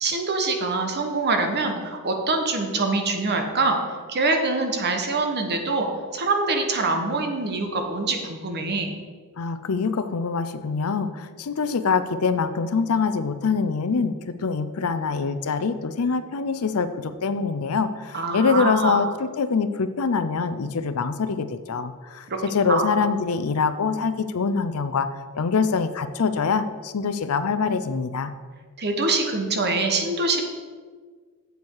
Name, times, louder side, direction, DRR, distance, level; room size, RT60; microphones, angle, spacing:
voice 1, 0.0-3.8 4.1-5.9 6.1-8.9 18.1-19.0 22.3-22.4 22.7-22.9 28.8-30.4, right 3 dB, 50° right, 4 dB, 1.2 m, -24 dB
voice 2, 9.4-25.1 25.3-28.3, left 5 dB, 70° left, 12 dB, 0.5 m, -24 dB
8.0 x 7.1 x 4.7 m, 1.5 s
head